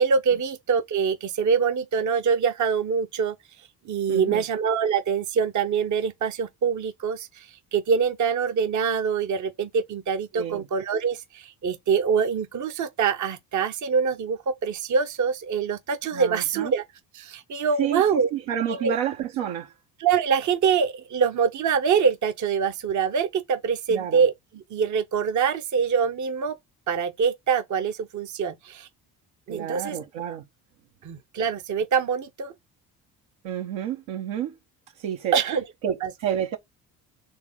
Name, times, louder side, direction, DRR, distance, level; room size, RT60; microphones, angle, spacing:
voice 1, 0.0-3.3 3.8-7.5 7.7-16.8 17.1-18.3 18.7-18.9 20.0-26.6 26.9-28.9 29.5-30.0 31.0-32.5 35.3-35.6 36.0-36.1, right 6 dB, 40° right, 0.8 m, -24 dB
voice 2, 4.1-4.5 10.3-10.7 16.1-16.7 17.8-19.7 23.9-24.2 29.5-30.5 33.4-34.5 35.0-35.3 35.8-36.6, right 9 dB, 70° right, 1.1 m, -29 dB
4.5 x 3.2 x 3.6 m
hypercardioid pair, 50°, 48 cm